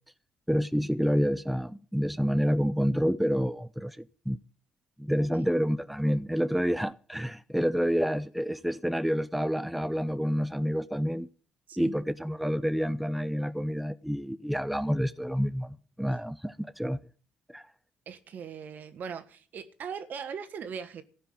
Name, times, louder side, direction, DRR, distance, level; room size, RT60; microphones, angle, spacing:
voice 1, 0.5-4.4 5.0-11.3 11.8-17.0 17.5-17.7, equal, ahead, 0.6 m, -28 dB
voice 2, 18.1-21.0, right 7 dB, 60° right, 1.4 m, -40 dB
14.5 x 5.8 x 9.3 m
hypercardioid pair, 50°, 3 cm